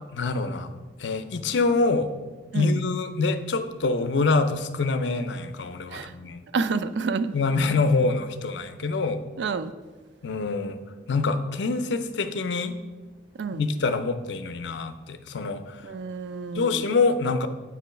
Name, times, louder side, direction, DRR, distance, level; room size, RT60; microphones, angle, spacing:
voice 1, 0.1-0.7 1.0-2.1 2.5-6.4 7.3-9.2 10.2-10.8 11.1-12.8 13.5-15.8 16.5-17.5, left 3 dB, 75° left, 10 dB, 0.5 m, -25 dB
voice 2, 6.5-7.4 9.4-9.7 13.4-13.6 15.8-16.8, right 4 dB, 75° right, 12 dB, 0.4 m, -29 dB
8.1 x 3.0 x 5.7 m, 1.3 s
head